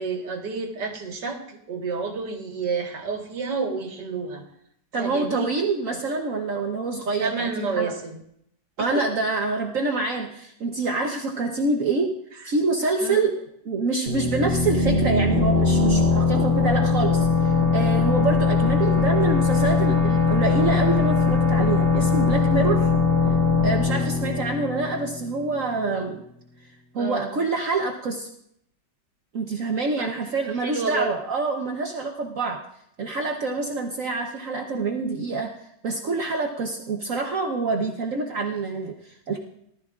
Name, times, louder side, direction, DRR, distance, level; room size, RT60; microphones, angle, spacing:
voice 1, 0.0-4.4 5.0-5.5 7.2-8.2 8.8-9.0 13.0-13.2 25.8-26.1 27.0-27.3 30.0-30.1 30.6-31.1, right 4 dB, 80° right, 3 dB, 2.2 m, -30 dB
voice 2, 4.9-7.9 8.8-12.1 12.4-13.3 13.6-22.9 23.6-26.2 26.9-28.3 29.3-32.6 33.0-35.5 35.8-39.4, right 3 dB, 55° right, 2 dB, 1.2 m, -26 dB
sound 1, 14.1-25.6, left 4 dB, 35° right, 1.4 m, -21 dB
19.0 x 12.5 x 2.4 m, 0.73 s
omnidirectional pair, 1.8 m